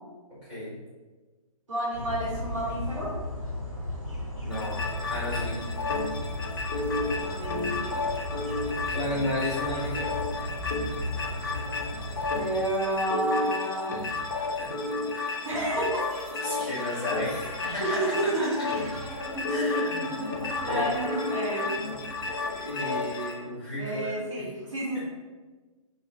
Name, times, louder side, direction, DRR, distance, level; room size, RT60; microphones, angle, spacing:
voice 1, 0.3-0.7 4.4-5.7 8.9-10.1 14.0-14.1 14.6-14.7 15.1-15.2 16.4-18.0 18.4-18.5 19.5-20.2 20.6-20.9 22.2-24.1 24.4-24.5 24.9-25.0, left 1 dB, 10° right, -11 dB, 1.5 m, -34 dB
voice 2, 1.7-3.1 7.1-7.9 12.3-14.1 15.4-16.2 17.8-18.5 20.7-21.7 23.8-25.0, right 1 dB, 60° right, -8 dB, 1.1 m, -30 dB
sound 1, 1.9-12.4, left 1 dB, 25° right, 1.5 m, -35 dB
sound 2, 4.5-23.3, left 3 dB, 40° left, 0.4 m, -32 dB
sound 3, 15.9-22.1, equal, 40° right, 1.3 m, -40 dB
3.1 x 2.4 x 2.3 m, 1.3 s
figure-of-eight pair, 130°, 19 cm